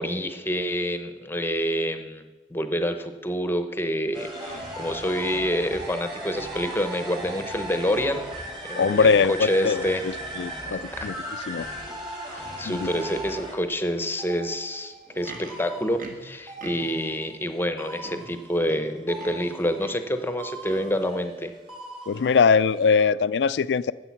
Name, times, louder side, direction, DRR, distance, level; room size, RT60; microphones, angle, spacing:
voice 1, 0.0-2.2 2.5-8.3 8.7-10.1 10.7-11.1 12.3-21.5, equal, 15° left, 8 dB, 0.8 m, -27 dB
sound 1, 4.1-17.5 17.8-20.1 20.4-23.0, right 1 dB, 30° right, 2.4 m, -38 dB
voice 2, 8.8-11.1 11.5-11.7 12.7-12.9 22.1-23.9, left 5 dB, 70° left, 17 dB, 0.4 m, -22 dB
Livestock farm animals working animals, 14.9-17.1 17.7-17.8 18.0-19.5 19.8-20.1 20.6-21.0 21.7-21.8, right 2 dB, 50° right, 1.5 m, -43 dB
12.5 x 7.9 x 5.9 m, 1.2 s
head